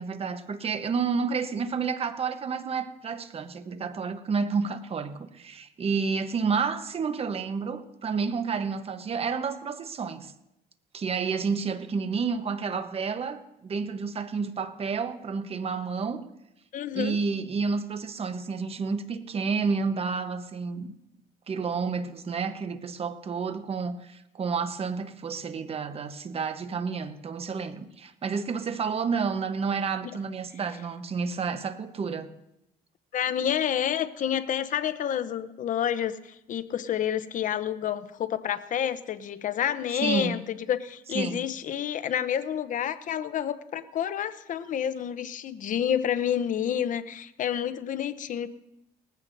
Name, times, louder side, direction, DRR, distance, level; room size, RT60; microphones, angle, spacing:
voice 1, 0.0-10.3 10.9-16.2 16.9-20.9 21.5-32.3 40.0-40.4 41.1-41.4, right 5 dB, 35° right, 1.0 m, -30 dB
voice 2, 16.7-17.2 30.0-30.1 33.1-40.4 40.7-48.5, left 9 dB, 50° left, 0.8 m, -29 dB
19.0 x 15.0 x 2.7 m
cardioid pair, 110°, 17 cm